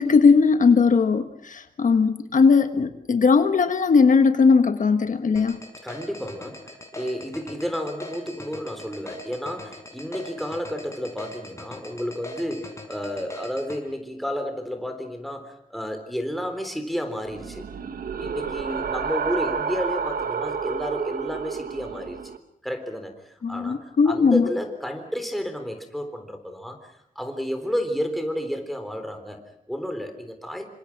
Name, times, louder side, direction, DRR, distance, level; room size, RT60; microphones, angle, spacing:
voice 1, 0.0-5.6 23.4-24.5, left 5 dB, 65° left, 8 dB, 1.4 m, -18 dB
sound 1, 5.4-13.8, left 1 dB, 20° left, 5.4 m, -40 dB
voice 2, 5.8-17.6 18.2-22.3 22.6-30.6, equal, ahead, 5 dB, 3.7 m, -31 dB
sound 2, 17.2-22.4, right 6 dB, 85° right, 1.4 m, -30 dB
27.5 x 25.5 x 6.0 m, 0.76 s
wide cardioid pair, 155°, 14 cm